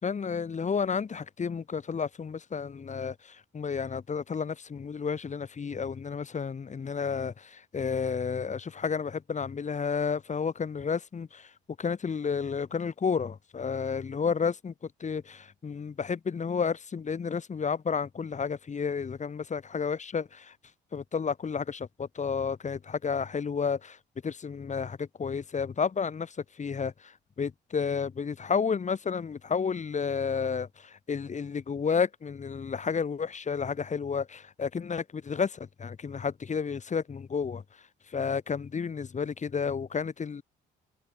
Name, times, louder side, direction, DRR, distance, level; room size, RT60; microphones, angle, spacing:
voice 1, 0.0-11.5 11.8-20.6 20.9-40.4, left 6 dB, 35° left, 2.1 m, -31 dB
cardioid pair, 90°, 20 cm